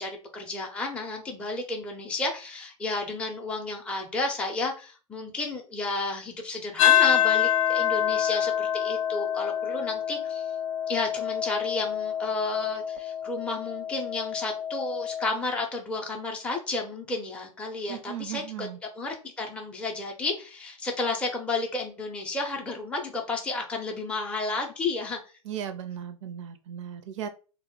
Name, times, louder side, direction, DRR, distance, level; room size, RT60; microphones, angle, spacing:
voice 1, 0.0-10.5 10.9-18.7 18.9-25.2, left 3 dB, 5° left, 0 dB, 0.5 m, -32 dB
sound 1, 6.8-15.3, left 10 dB, 65° left, 0.4 m, -26 dB
voice 2, 17.9-18.8 25.4-27.3, right 9 dB, 60° right, 9 dB, 0.4 m, -36 dB
2.3 x 2.0 x 3.6 m, 0.35 s
hypercardioid pair, 105°, 18 cm